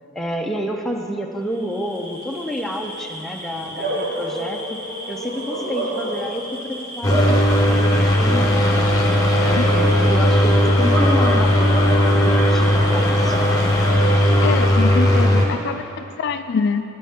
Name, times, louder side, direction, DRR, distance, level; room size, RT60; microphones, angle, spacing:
voice 1, 0.1-4.8 5.1-8.8 9.4-13.7, equal, ahead, 1 dB, 0.6 m, -29 dB
Bark / Cricket, 1.6-14.9, right 1 dB, 50° right, 2.2 m, -30 dB
sound 1, 7.0-15.4, equal, 20° left, 1.1 m, -17 dB
voice 2, 14.4-16.8, left 5 dB, 55° left, 9 dB, 0.3 m, -24 dB
13.0 x 9.3 x 3.6 m, 3.0 s
head